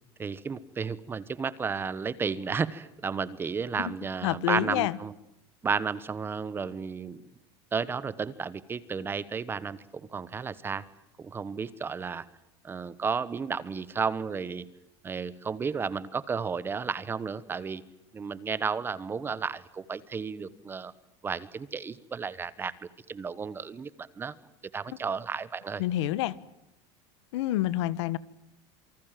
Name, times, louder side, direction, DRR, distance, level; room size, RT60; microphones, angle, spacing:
voice 1, 0.2-5.1 5.6-7.2 7.7-10.8 11.2-12.3 12.6-14.6 15.0-17.8 18.1-20.9 21.2-22.7 23.1-24.3 24.7-25.8, right 5 dB, 15° right, 17 dB, 1.1 m, -33 dB
voice 2, 4.2-5.0 24.9-25.0 25.8-26.4 27.3-28.2, left 14 dB, 85° left, 19 dB, 1.4 m, -28 dB
28.0 x 24.5 x 7.6 m, 0.84 s
cardioid pair, 170°, 14 cm